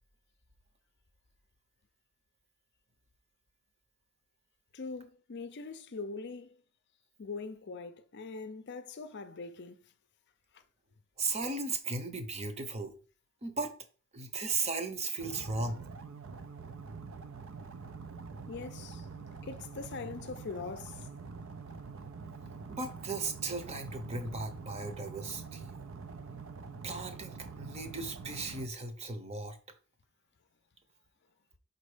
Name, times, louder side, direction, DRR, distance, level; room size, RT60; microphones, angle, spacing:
voice 1, 4.7-6.6 7.2-9.8 18.5-19.1 19.4-21.1, left 4 dB, 50° left, 0.5 m, -42 dB
voice 2, 11.2-12.9 13.4-13.7 14.1-15.8 22.7-25.7 26.8-29.6, right 3 dB, 30° right, 0.9 m, -36 dB
sound 1, 15.2-28.7, right 5 dB, 65° right, 0.6 m, -45 dB
5.3 x 4.0 x 4.9 m
head